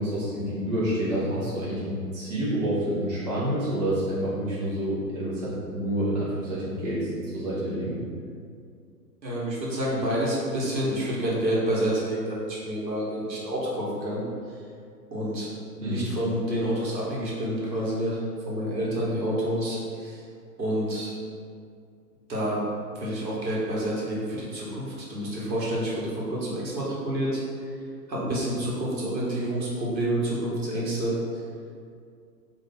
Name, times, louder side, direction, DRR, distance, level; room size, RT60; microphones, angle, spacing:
voice 1, 0.0-8.0 15.8-16.0, right 1 dB, 25° right, -9 dB, 0.6 m, -28 dB
voice 2, 9.2-14.2 15.1-15.5 15.8-18.2 18.5-20.2 20.6-21.1 22.3-22.6 23.0-27.4 28.1-31.2, right 1 dB, 85° right, -6 dB, 1.1 m, -28 dB
2.6 x 2.4 x 3.3 m, 2.2 s
figure-of-eight pair, 135°, 50 cm